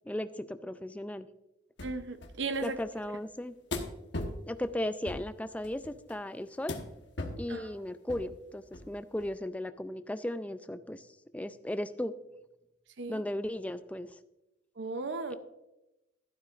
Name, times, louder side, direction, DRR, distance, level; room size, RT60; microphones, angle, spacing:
voice 1, 0.1-1.3 2.6-3.5 4.5-6.7 7.4-11.1 11.3-12.1 13.1-14.2 15.3-15.4, left 1 dB, 5° left, 11 dB, 0.4 m, -36 dB
sound 1, 1.8-1.9 2.2-3.0 3.7-4.4 5.1-5.2 5.6-6.2 6.7-6.9 7.2-7.5 8.1-8.3 8.7-8.9 9.2-9.3, left 2 dB, 65° left, 1.2 m, -37 dB
voice 2, 1.8-2.8 7.5-7.7 13.0-13.2 14.8-15.4, right 3 dB, 70° right, 10 dB, 0.6 m, -36 dB
12.5 x 11.5 x 2.5 m, 0.95 s
head